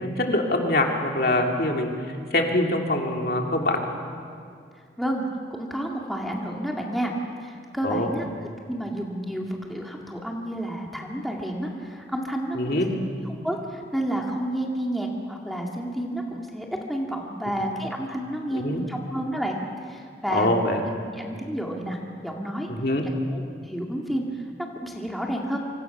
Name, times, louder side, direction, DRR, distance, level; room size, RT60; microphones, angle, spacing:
voice 1, 0.0-1.9 2.3-3.8 7.8-8.1 12.5-12.9 18.5-18.9 20.3-20.8 22.7-23.0, left 1 dB, 55° left, 1 dB, 2.6 m, -24 dB
voice 2, 5.5-8.3 8.7-12.8 13.4-19.6 19.8-20.5 20.9-22.0 22.2-22.7 23.3-24.4 24.8-25.6, right 1 dB, ahead, -1 dB, 2.0 m, -30 dB
26.0 x 25.5 x 6.0 m, 2.2 s
head